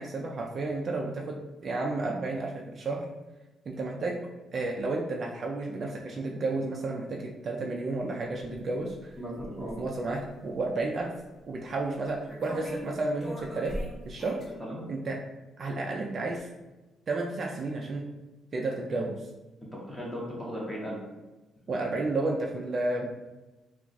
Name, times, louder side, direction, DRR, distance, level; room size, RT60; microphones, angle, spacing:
voice 1, 0.0-1.4 1.6-3.1 3.7-4.2 4.5-9.1 9.6-11.1 11.5-13.7 14.1-14.4 14.9-15.2 15.6-16.5 17.1-18.0 18.5-19.2 21.7-23.1, right 2 dB, 45° right, 0 dB, 0.4 m, -32 dB
sound 1, 8.4-8.6 8.9-9.9 11.2-11.3 12.3-12.9 13.2-14.5, equal, 30° left, 1.0 m, -39 dB
voice 2, 9.2-9.8 14.6-14.8 19.7-21.0, equal, 5° left, -5 dB, 0.9 m, -37 dB
2.3 x 2.3 x 3.9 m, 1.1 s
cardioid pair, 90°, 0 cm